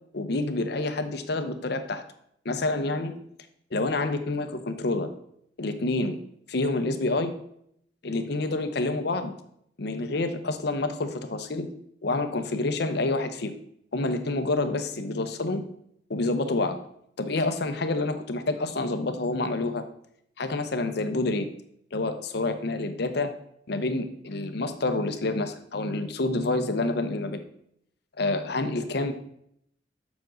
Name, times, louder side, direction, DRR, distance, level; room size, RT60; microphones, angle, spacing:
voice 1, 0.1-2.0 2.4-3.1 3.7-5.1 5.6-6.2 6.5-7.3 8.0-9.3 9.8-11.7 12.0-13.5 13.9-15.6 16.1-16.8 17.2-19.9 20.4-21.5 21.9-23.3 23.7-27.4 28.2-29.1, left 2 dB, 60° left, 8 dB, 0.8 m, -28 dB
7.2 x 6.2 x 3.9 m, 0.71 s
head